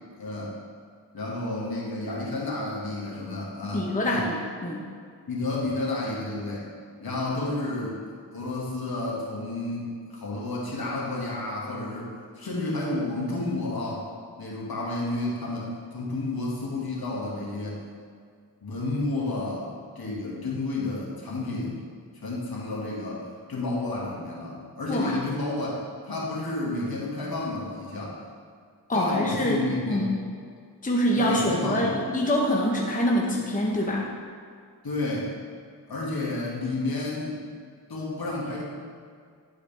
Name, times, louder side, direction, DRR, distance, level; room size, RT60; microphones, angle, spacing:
voice 1, 0.2-0.5 1.1-4.3 5.3-6.7 7.0-8.0 8.3-14.0 14.4-17.8 18.6-19.7 20.0-21.8 22.2-25.8 26.1-28.2 28.9-30.1 31.2-31.9 34.8-35.3 35.9-37.4 37.9-38.6, left 2 dB, 60° left, -5 dB, 2.1 m, -31 dB
voice 2, 3.6-4.8 24.9-25.2 28.9-30.1 30.8-34.1, equal, 20° left, -2 dB, 1.0 m, -25 dB
11.0 x 4.8 x 3.4 m, 2.1 s
cardioid pair, 60°, 41 cm